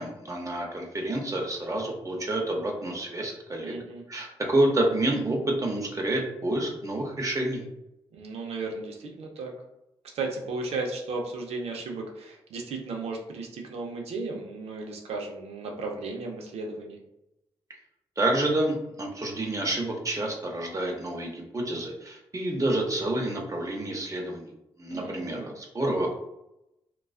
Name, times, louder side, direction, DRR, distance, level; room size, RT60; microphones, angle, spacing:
voice 1, 0.0-3.7 4.1-7.6 18.2-24.5 24.8-26.1, right 1 dB, 30° right, 0 dB, 0.7 m, -28 dB
voice 2, 3.6-4.0 8.1-9.5 10.0-17.0 24.9-25.5, right 3 dB, 80° right, 1 dB, 0.5 m, -35 dB
2.3 x 2.3 x 2.3 m, 0.87 s
supercardioid pair, 45°, 10 cm